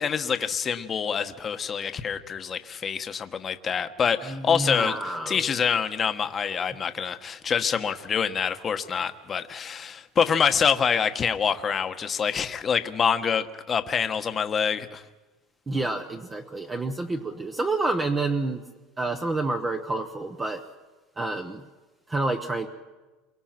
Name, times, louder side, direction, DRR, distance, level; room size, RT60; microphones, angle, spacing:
voice 1, 0.0-15.0, left 7 dB, 25° left, 9 dB, 1.2 m, -26 dB
voice 2, 4.3-5.4 15.7-18.6 19.0-20.6 21.2-21.6 22.1-22.7, right 2 dB, 15° right, 5 dB, 1.1 m, -28 dB
28.5 x 23.5 x 6.0 m, 1.2 s
supercardioid pair, 140°, 0 cm